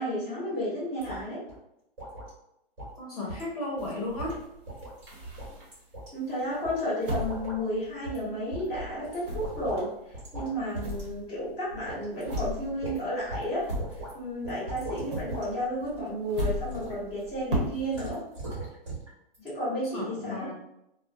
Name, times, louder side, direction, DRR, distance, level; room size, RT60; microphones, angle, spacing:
voice 1, 0.0-1.4 6.1-9.9 10.3-13.6 14.1-18.2 19.4-20.5, equal, 10° right, -15 dB, 0.9 m, -32 dB
sound 1, 1.0-1.2 1.5-1.6 2.0-2.3 2.8-3.0 3.3-3.5 3.8-3.9 4.2-5.0 5.4-6.1 6.6-6.8 7.1-7.6 8.1-8.2 8.5-9.9 10.1-10.5 10.7-11.0 11.4-11.5 11.9-12.4 12.8-13.5 13.8-14.1 14.4-15.5 15.8-16.1 16.7-16.9 17.9-19.1 19.3-19.5, right 1 dB, 30° right, 1.2 m, -39 dB
voice 2, 3.0-4.3 19.9-20.5, left 2 dB, 40° left, -4 dB, 0.7 m, -34 dB
sound 2, 3.8-5.9 6.4-8.5 8.7-14.4 14.7-18.1, equal, 60° right, 0.9 m, -36 dB
2.4 x 2.0 x 2.6 m, 0.81 s
hypercardioid pair, 175°, 30 cm